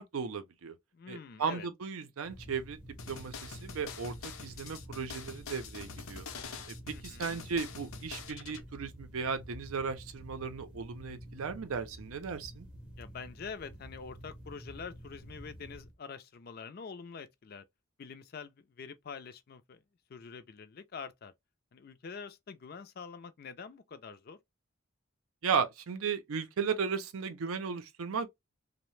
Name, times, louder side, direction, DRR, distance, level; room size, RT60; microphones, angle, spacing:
voice 1, 0.0-0.7 1.1-2.8 3.1-4.2 4.4-6.3 7.0-12.7 25.4-28.3, right 6 dB, 90° right, 0.5 m, -35 dB
voice 2, 0.9-1.7 6.9-7.4 13.0-17.6 18.0-19.8 20.1-21.3 21.7-24.4, left 5 dB, 45° left, 0.4 m, -46 dB
sound 1, 2.2-15.9, equal, 5° right, 0.5 m, -50 dB
sound 2, 3.0-8.6, left 5 dB, 85° left, 0.7 m, -45 dB
2.7 x 2.1 x 3.1 m
head